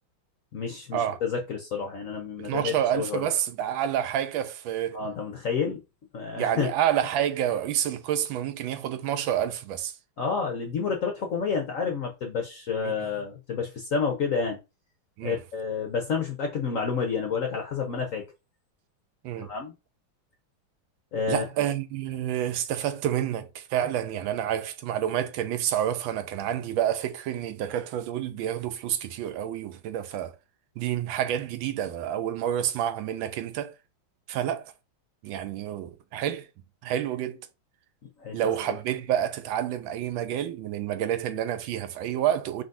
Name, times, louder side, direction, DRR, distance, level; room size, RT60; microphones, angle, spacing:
voice 1, 0.5-3.2 4.9-5.8 6.1-6.7 10.2-14.6 15.2-18.2 19.4-19.7 21.1-21.5 38.2-38.4, left 5 dB, 60° left, 0.8 m, -29 dB
voice 2, 2.4-5.0 6.4-9.9 12.8-12.9 15.2-15.4 19.2-19.5 21.3-30.3 30.8-33.7 34.3-34.7 35.2-36.5 36.8-37.4 38.3-42.6, right 10 dB, 80° right, 1.4 m, -28 dB
4.5 x 3.9 x 2.6 m
omnidirectional pair, 2.3 m